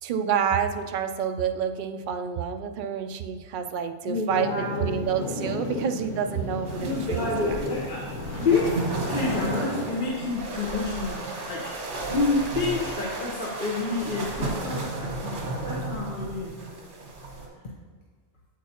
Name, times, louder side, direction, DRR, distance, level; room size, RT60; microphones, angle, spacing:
voice 1, 0.0-7.6, right 7 dB, 55° right, 7 dB, 0.6 m, -28 dB
voice 2, 4.0-4.9 5.7-5.9 6.8-8.1 8.4-16.5, left 3 dB, 50° left, -3 dB, 1.0 m, -29 dB
sound 1, 4.3-9.9, left 1 dB, 85° left, 2.0 m, -34 dB
sound 2, 6.7-17.5, right 2 dB, 90° right, 1.6 m, -33 dB
8.4 x 8.2 x 2.9 m, 1.5 s
omnidirectional pair, 1.2 m